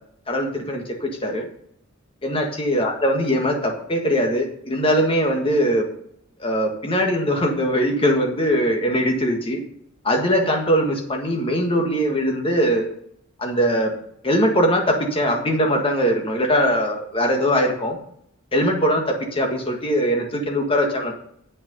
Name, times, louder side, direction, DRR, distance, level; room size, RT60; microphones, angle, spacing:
voice 1, 0.3-1.5 2.2-5.9 6.4-9.6 10.0-12.8 13.4-13.9 14.2-18.0 18.5-21.1, equal, 25° left, 2 dB, 1.6 m, -21 dB
8.6 x 6.5 x 5.4 m, 0.71 s
head